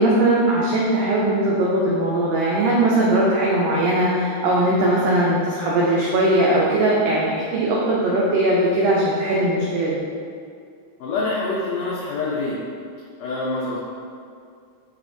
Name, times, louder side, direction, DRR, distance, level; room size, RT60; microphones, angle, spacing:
voice 1, 0.0-10.0, right 1 dB, 85° right, -5 dB, 1.4 m, -19 dB
voice 2, 11.0-12.6 13.2-13.8, left 3 dB, 75° left, -7 dB, 1.6 m, -25 dB
4.9 x 3.4 x 2.6 m, 2.3 s
omnidirectional pair, 3.5 m